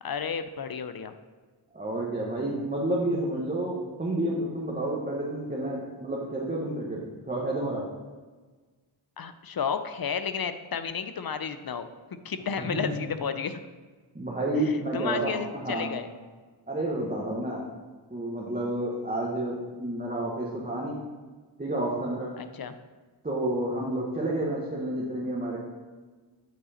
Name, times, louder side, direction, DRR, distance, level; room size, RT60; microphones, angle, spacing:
voice 1, 0.0-1.1 9.2-11.9 12.2-13.6 14.5-16.1 22.4-22.8, left 6 dB, 50° left, 10 dB, 0.6 m, -32 dB
voice 2, 1.7-7.0 7.3-7.8 12.7-12.9 14.1-16.0 16.7-17.6 18.1-21.0 21.6-22.3 23.2-25.6, right 1 dB, 20° right, -4 dB, 1.3 m, -30 dB
7.9 x 4.8 x 4.2 m, 1.4 s
cardioid pair, 55°, 47 cm